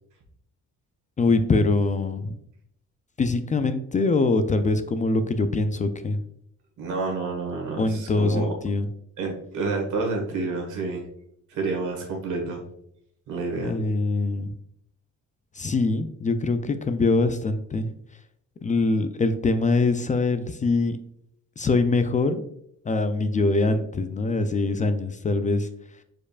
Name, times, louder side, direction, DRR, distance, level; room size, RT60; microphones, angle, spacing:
voice 1, 1.2-2.3 3.2-6.2 7.8-8.9 13.6-14.5 15.6-17.9 18.6-21.0 21.6-22.4 22.9-25.7, left 3 dB, 25° left, 10 dB, 0.4 m, -23 dB
voice 2, 6.8-8.5 9.2-11.0 11.5-12.6 13.3-13.8, right 3 dB, 80° right, 1 dB, 1.6 m, -29 dB
4.9 x 4.5 x 2.4 m, 0.72 s
cardioid pair, 90°, 30 cm